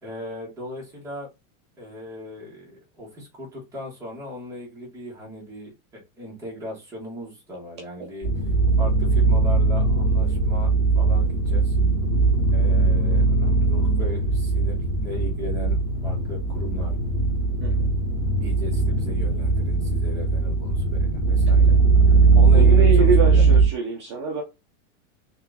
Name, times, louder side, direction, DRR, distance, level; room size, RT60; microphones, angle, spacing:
voice 1, 0.0-1.3 1.8-8.3 8.8-10.7 10.9-11.8 12.5-15.8 16.0-16.9 18.4-21.8 22.1-23.4, left 1 dB, 10° right, -5 dB, 1.8 m, -37 dB
sound 1, 8.2-23.6, right 3 dB, 10° left, 2.1 m, -19 dB
voice 2, 22.5-24.4, right 3 dB, 25° right, 2 dB, 0.3 m, -25 dB
4.4 x 3.0 x 4.0 m, 0.24 s
supercardioid pair, 180°, 40 cm